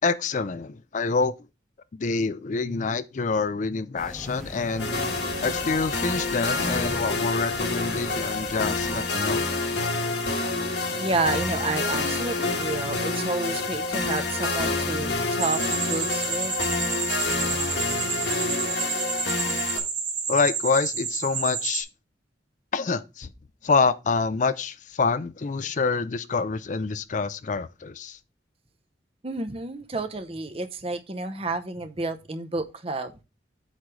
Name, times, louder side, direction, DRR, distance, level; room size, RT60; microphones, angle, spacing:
voice 1, 0.0-1.3 1.9-4.9 5.4-9.6 20.3-21.9 22.7-23.3 23.6-28.2, left 4 dB, 45° left, 0.4 m, -26 dB
sound 1, 4.0-9.0, equal, ahead, 1.0 m, -41 dB
sound 2, 4.8-19.8, left 3 dB, 65° left, 1.6 m, -28 dB
voice 2, 10.9-15.6 15.9-16.5 29.2-33.1, right 2 dB, 30° right, 0.8 m, -30 dB
sound 3, 15.4-21.8, right 6 dB, 80° right, 2.5 m, -30 dB
8.1 x 3.3 x 6.0 m
head